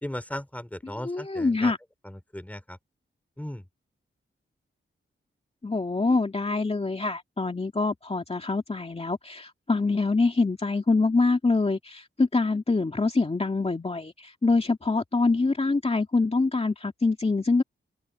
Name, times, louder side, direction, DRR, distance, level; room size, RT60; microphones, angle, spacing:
voice 1, 0.0-1.7 2.1-2.8 3.4-3.6, left 1 dB, 5° left, 3.4 m, -37 dB
voice 2, 0.8-1.8 5.6-17.6, left 3 dB, 30° left, 2.4 m, -25 dB
open air
wide cardioid pair, 90°, 21 cm